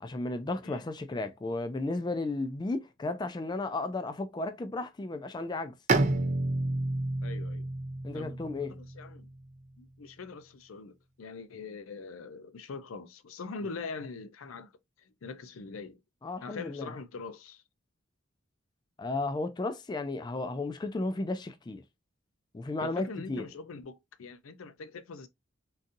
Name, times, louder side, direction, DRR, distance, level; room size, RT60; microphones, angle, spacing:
voice 1, 0.0-5.7 8.0-8.8 16.2-16.9 19.0-21.8 22.5-23.5, left 2 dB, 20° left, 0.3 m, -34 dB
Bowed string instrument, 5.9-9.5, right 2 dB, 35° right, 0.5 m, -30 dB
voice 2, 7.2-7.7 8.1-8.4 8.7-9.3 9.8-14.7 15.0-16.0 16.4-17.6 22.8-25.3, left 4 dB, 85° left, 0.5 m, -43 dB
3.9 x 2.5 x 2.5 m
head